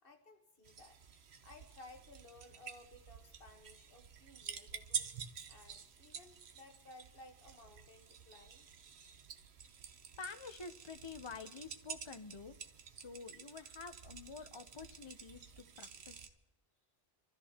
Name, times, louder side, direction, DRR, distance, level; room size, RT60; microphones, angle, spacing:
voice 1, 0.0-1.0 1.4-5.1 5.5-8.6, left 2 dB, 60° left, 4 dB, 1.6 m, -58 dB
sound 1, 0.6-16.3, right 7 dB, 90° right, 1.1 m, -49 dB
voice 2, 10.2-12.6 12.9-16.3, left 5 dB, 35° left, 9 dB, 0.6 m, -49 dB
26.0 x 13.5 x 2.8 m, 0.90 s
omnidirectional pair, 1.0 m